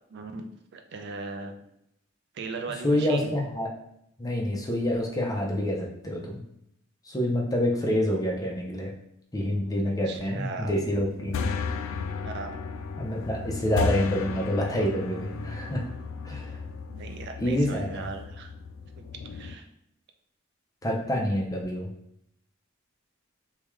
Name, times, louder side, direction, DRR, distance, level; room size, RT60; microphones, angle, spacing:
voice 1, 0.1-1.6 2.3-3.4 10.1-10.7 12.2-12.6 16.9-18.5 19.0-19.1 19.3-19.7, right 4 dB, 55° right, 5 dB, 0.4 m, -38 dB
voice 2, 2.8-3.7 4.2-6.4 7.1-8.9 9.3-11.4 13.0-15.9 16.2-16.6 17.4-18.1 20.8-21.9, left 1 dB, 20° left, -1 dB, 0.5 m, -27 dB
sound 1, 10.9-19.6, left 4 dB, 75° left, 0.3 m, -34 dB
3.5 x 2.2 x 3.1 m, 0.76 s
head